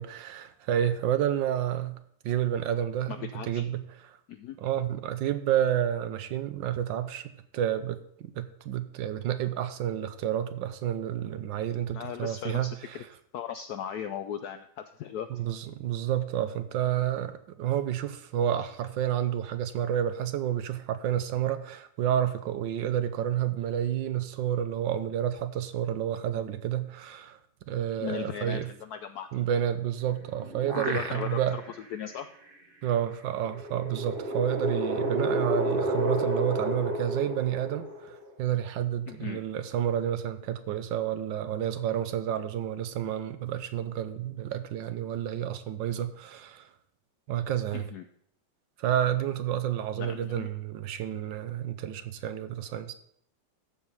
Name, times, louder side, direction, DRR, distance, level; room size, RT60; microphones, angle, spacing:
voice 1, 0.0-2.0 2.2-3.8 4.1-4.2 4.6-13.1 15.3-27.4 27.7-28.7 29.3-31.6 32.8-46.7 47.3-47.9 48.8-52.9, right 10 dB, 75° right, 1.3 m, -30 dB
voice 2, 3.1-3.6 4.3-4.6 11.9-13.0 13.3-15.3 28.0-29.3 30.7-31.6 31.9-32.3 39.1-39.4 47.7-48.0 50.0-50.5, left 9 dB, 80° left, 0.8 m, -37 dB
sound 1, 30.0-31.7 32.1-32.2 33.5-38.3, right 1 dB, 35° right, 1.1 m, -31 dB
13.5 x 4.9 x 5.4 m
omnidirectional pair, 2.2 m